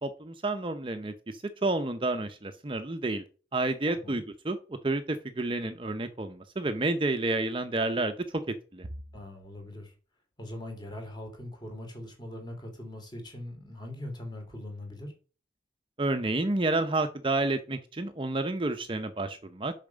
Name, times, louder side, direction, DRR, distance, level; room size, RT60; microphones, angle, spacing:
voice 1, 0.0-3.2 3.5-8.1 8.7-8.9 16.0-19.7, right 2 dB, 30° right, 0.7 m, -30 dB
voice 2, 3.9-4.2 9.1-9.9 10.4-15.1, left 1 dB, 25° left, 2.7 m, -41 dB
7.0 x 5.8 x 5.1 m
head